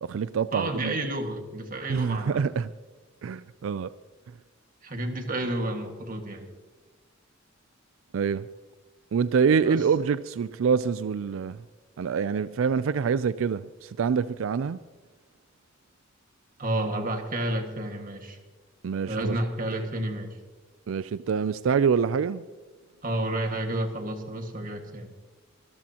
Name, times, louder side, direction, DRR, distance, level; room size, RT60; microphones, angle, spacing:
voice 1, 0.0-1.0 1.9-2.7 3.2-3.9 8.1-8.4 9.1-11.6 12.0-14.8 18.8-19.3 19.7-19.9 20.9-22.4, right 6 dB, 90° right, 0.4 m, -26 dB
voice 2, 0.5-2.4 4.8-6.5 9.6-9.9 16.6-18.4 19.1-20.4 23.0-25.1, right 1 dB, 45° right, 1.8 m, -30 dB
24.5 x 13.5 x 2.9 m
head